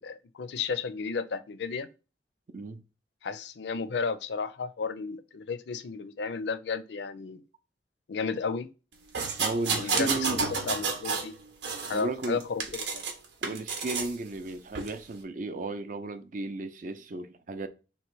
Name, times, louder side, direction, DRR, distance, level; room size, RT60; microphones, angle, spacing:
voice 1, 0.0-1.9 3.2-7.4 8.1-8.7 9.8-11.3 11.9-13.0, left 5 dB, 75° left, 0.5 m, -33 dB
sound 1, 9.1-11.3 11.6-13.1 13.4-14.1 14.7-14.9, right 4 dB, 85° right, 0.9 m, -31 dB
voice 2, 9.4-10.4 11.9-12.4 13.4-17.7, right 3 dB, 45° right, 0.5 m, -34 dB
3.2 x 3.0 x 4.6 m
head